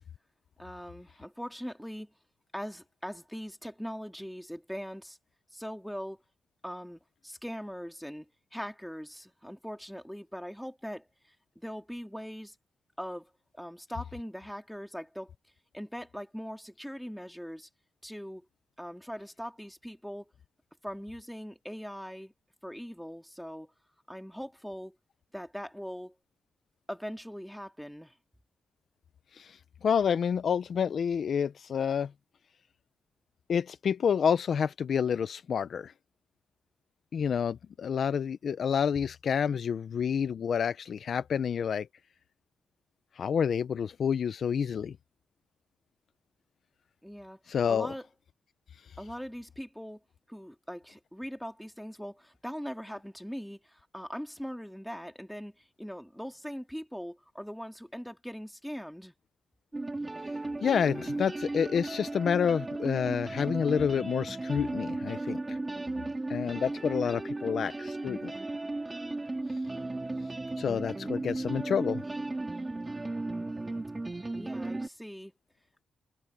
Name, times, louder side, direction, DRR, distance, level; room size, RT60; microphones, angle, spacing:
voice 1, 0.6-2.1 2.5-5.2 5.5-6.2 6.6-12.5 13.0-13.3 13.6-15.3 15.7-17.7 18.0-18.5 18.8-20.3 20.8-22.3 22.6-23.7 24.1-24.9 25.3-26.1 26.9-28.1 47.0-48.1 49.0-50.0 50.3-59.1 73.5-73.8 74.3-75.3, equal, ahead, 2.4 m, -41 dB
voice 2, 29.3-32.1 33.5-35.9 37.1-41.9 43.2-45.0 47.5-47.9 60.6-65.6 66.3-68.3 70.6-72.0, left 7 dB, 50° left, 0.5 m, -29 dB
sound 1, 59.7-74.9, right 2 dB, 15° right, 2.4 m, -35 dB
wide cardioid pair, 170°, 0 cm